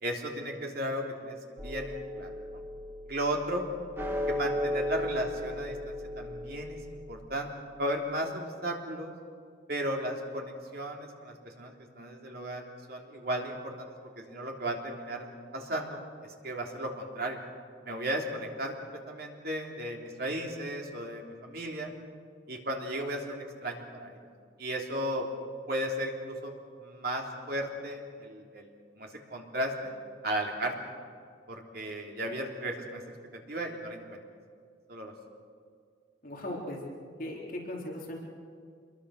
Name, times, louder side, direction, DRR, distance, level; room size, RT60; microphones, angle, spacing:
voice 1, 0.0-2.6 3.1-3.6 4.3-7.5 7.8-9.1 9.7-13.9 14.3-15.3 15.5-16.0 16.4-17.4 17.8-21.9 22.5-24.2 24.6-25.2 25.7-26.5 26.8-28.7 29.0-29.9 30.2-30.7 31.5-33.0 33.5-34.2 34.9-35.1, right 1 dB, 50° right, 1 dB, 3.3 m, -35 dB
sound 1, 1.6-7.3, left 1 dB, 10° right, 2.3 m, -36 dB
voice 2, 36.2-36.8 37.2-38.2, left 1 dB, 45° left, -2 dB, 3.9 m, -38 dB
26.5 x 22.5 x 6.5 m, 2.2 s
head